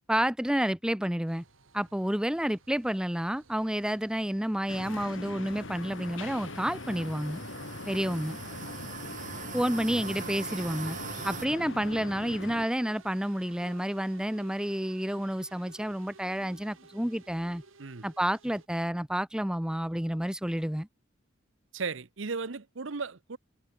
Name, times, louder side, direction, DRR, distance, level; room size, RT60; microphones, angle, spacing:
voice 1, 0.1-1.4 1.7-7.4 7.9-8.4 9.5-11.0 11.2-17.6 18.0-20.9, equal, 5° right, 0.6 m, -30 dB
sound 1, 1.3-18.7, right 3 dB, 90° right, 3.1 m, -56 dB
sound 2, 4.7-12.7, left 2 dB, 70° left, 2.6 m, -41 dB
sound 3, 5.5-11.5, right 6 dB, 40° right, 1.8 m, -43 dB
voice 2, 21.7-23.4, right 4 dB, 70° right, 0.9 m, -35 dB
head